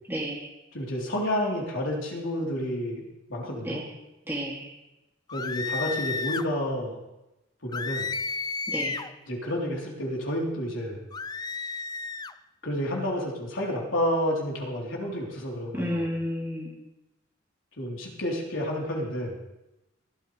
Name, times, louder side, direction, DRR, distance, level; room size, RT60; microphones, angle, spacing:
voice 1, 0.1-0.5 3.6-3.9 4.3-4.7 8.7-9.0 15.7-16.7, equal, 10° right, -3 dB, 2.4 m, -31 dB
voice 2, 0.7-3.8 5.3-7.0 7.6-8.1 9.3-11.1 12.6-16.0 17.8-19.4, equal, 75° left, -3 dB, 3.6 m, -30 dB
sound 1, 5.3-6.5 7.7-9.1 11.1-12.3, left 4 dB, 20° left, 0.3 m, -32 dB
20.0 x 13.0 x 3.3 m, 0.96 s
head